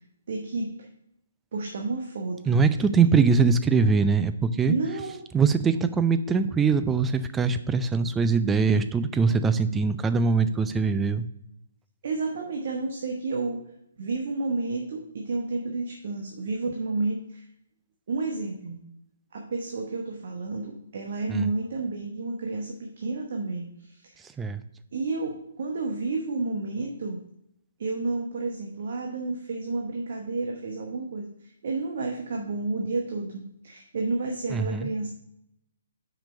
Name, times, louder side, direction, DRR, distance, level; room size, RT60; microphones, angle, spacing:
voice 1, 0.3-0.9 1.5-2.6 4.7-5.2 12.0-13.6 14.0-17.5 18.1-18.8 19.3-24.2 24.9-27.2 27.8-35.1, right 3 dB, 55° right, 2 dB, 0.9 m, -31 dB
voice 2, 2.5-4.7 5.3-11.3 21.3-21.5 24.4-24.6 34.5-34.9, right 5 dB, 10° right, 11 dB, 0.4 m, -22 dB
5.9 x 5.1 x 5.4 m, 0.79 s
figure-of-eight pair, 130°, 0 cm